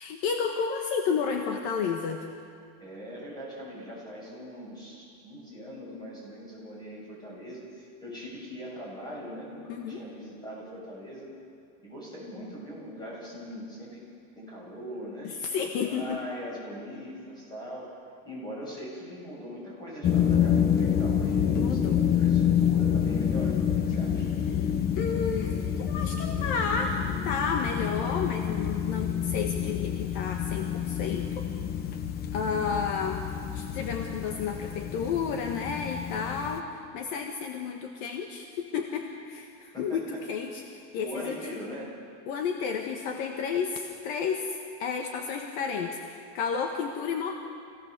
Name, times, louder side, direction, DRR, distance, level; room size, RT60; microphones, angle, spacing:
voice 1, 0.0-2.3 9.7-10.0 15.2-16.2 21.5-22.1 24.5-24.7 25.0-31.4 32.3-33.2 33.5-41.4 42.3-47.3, left 6 dB, 50° left, 3 dB, 1.6 m, -31 dB
voice 2, 2.8-11.3 11.8-14.0 14.3-15.3 15.8-17.9 18.2-24.3 32.4-32.6 39.7-40.0 41.0-41.9, equal, 10° left, -4 dB, 7.4 m, -41 dB
sound 1, 20.0-36.6, left 8 dB, 25° left, 1.0 m, -28 dB
26.0 x 17.5 x 6.8 m, 2.3 s
supercardioid pair, 170°, 34 cm